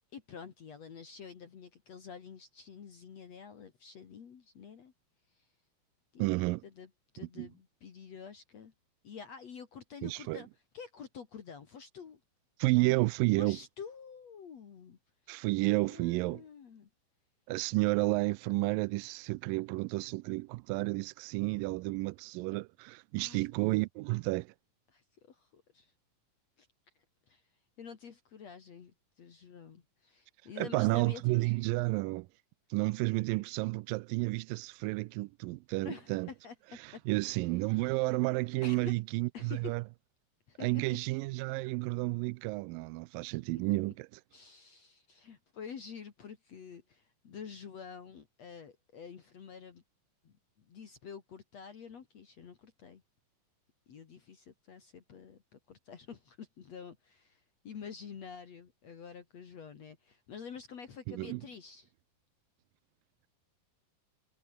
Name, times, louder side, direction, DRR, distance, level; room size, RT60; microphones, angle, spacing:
voice 1, 0.1-4.9 5.3-5.5 6.1-6.4 6.6-8.7 9.0-10.5 10.7-12.2 13.4-15.0 15.3-15.4 15.7-16.9 23.2-23.4 24.9-25.9 26.6-26.7 27.3-27.4 27.8-31.6 35.8-37.0 37.7-38.1 38.6-39.0 39.3-39.8 40.5-41.0 43.5-43.6 44.3-49.8 50.2-53.0 53.9-61.9, left 6 dB, 50° left, 3.1 m, -48 dB
voice 2, 6.2-6.6 7.4-7.5 10.0-10.4 12.6-13.6 15.3-16.4 17.5-24.5 30.6-32.3 32.7-36.3 37.1-39.8 40.6-44.1 61.1-61.4, right 23 dB, 85° right, 2.2 m, -31 dB
omnidirectional pair, 4.0 m